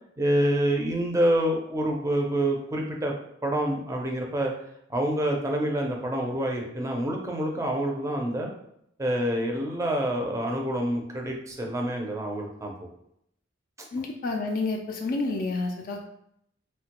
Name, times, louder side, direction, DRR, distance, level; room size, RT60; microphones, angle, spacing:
voice 1, 0.2-3.1 3.4-4.5 4.9-8.5 9.0-12.9 13.8-13.9, right 1 dB, 15° right, 0 dB, 0.5 m, -27 dB
voice 2, 13.9-16.0, left 3 dB, 50° left, 2 dB, 0.3 m, -29 dB
3.2 x 2.1 x 2.9 m, 0.73 s
head